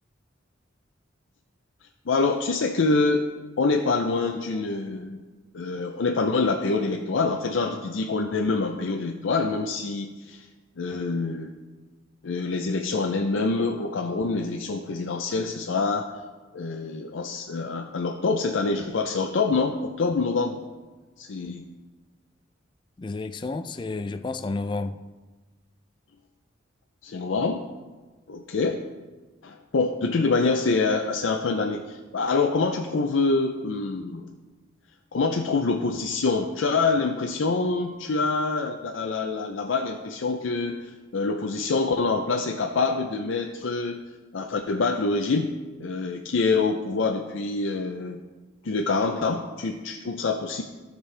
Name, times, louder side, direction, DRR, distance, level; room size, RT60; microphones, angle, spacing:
voice 1, 2.1-3.2 3.6-5.2 5.5-10.5 10.8-11.5 12.2-16.1 16.5-20.6 21.2-21.7 27.0-27.6 28.3-28.8 29.4-34.3 35.1-44.0 44.3-45.5 45.8-48.2 48.6-50.6, left 3 dB, 75° left, 0.5 m, -26 dB
voice 2, 23.0-25.0, left 3 dB, 25° left, 0.3 m, -31 dB
15.5 x 5.3 x 3.3 m
head